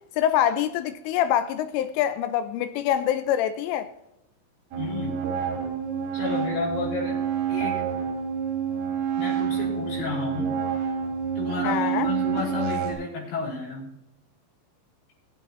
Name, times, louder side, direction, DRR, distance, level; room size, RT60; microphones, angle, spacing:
voice 1, 0.2-3.9 11.6-12.1, left 10 dB, 80° left, 3.0 m, -25 dB
sound 1, 4.7-12.9, right 8 dB, 80° right, 5.0 m, -28 dB
voice 2, 4.8-5.2 6.1-7.9 9.1-10.6 11.4-13.9, left 4 dB, 60° left, 7.3 m, -32 dB
22.5 x 8.8 x 3.0 m
omnidirectional pair, 5.9 m